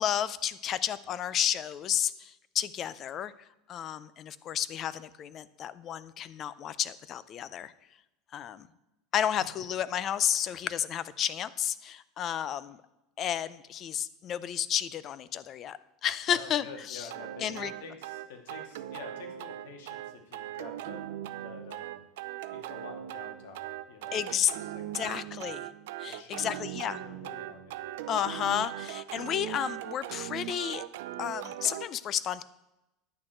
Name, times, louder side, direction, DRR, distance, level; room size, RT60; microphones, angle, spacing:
voice 1, 0.0-3.3 3.7-7.7 8.3-8.7 9.1-12.8 13.2-17.1 17.4-17.7 24.1-24.5 24.9-25.7 26.0-27.0 28.1-30.9 31.2-32.4, left 10 dB, 35° left, 16 dB, 0.5 m, -32 dB
voice 2, 16.3-22.0 22.5-25.2 26.0-27.8, left 4 dB, 90° left, 4 dB, 2.2 m, -48 dB
sound 1, 17.1-31.9, right 13 dB, 85° right, 0.6 m, -40 dB
10.5 x 8.7 x 4.4 m, 0.94 s
supercardioid pair, 150°, 0 cm